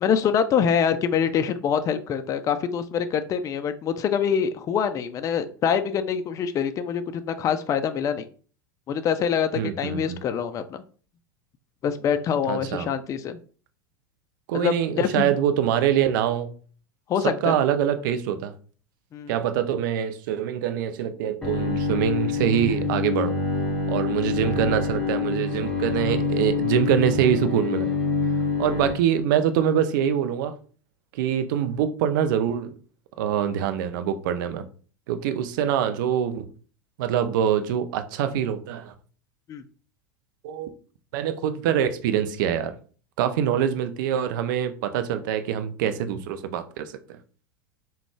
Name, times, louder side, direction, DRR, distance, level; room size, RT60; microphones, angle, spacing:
voice 1, 0.0-8.2 8.9-10.8 11.8-13.4 14.5-15.3 17.1-17.6 19.1-19.3 39.5-39.6, left 7 dB, 30° left, 0.4 m, -25 dB
voice 2, 9.5-10.2 12.4-12.9 14.5-16.5 17.2-18.5 19.3-23.4 23.9-27.9 28.6-30.5 31.1-32.7 33.2-34.6 35.1-36.5 37.0-38.9 40.4-40.7 41.1-42.7 43.2-47.2, right 9 dB, 60° right, 0.5 m, -24 dB
Bowed string instrument, 21.4-28.9, left 4 dB, 5° left, 1.1 m, -26 dB
3.6 x 2.3 x 3.3 m
hypercardioid pair, 85°, 12 cm